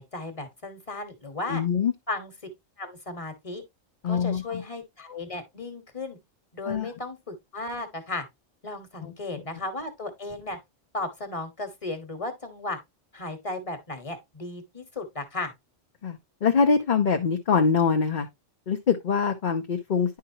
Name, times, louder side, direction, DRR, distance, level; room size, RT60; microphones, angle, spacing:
voice 1, 0.0-1.6 2.1-2.3 2.8-3.6 4.0-6.2 6.5-8.2 8.6-10.6 10.9-12.8 13.1-15.5, left 2 dB, 25° left, 1.5 m, -35 dB
voice 2, 1.5-1.9 4.0-4.6 6.7-6.9 9.0-9.1 16.0-18.3 18.7-20.2, left 6 dB, 45° left, 0.8 m, -24 dB
10.0 x 4.7 x 2.8 m
omnidirectional pair, 1.3 m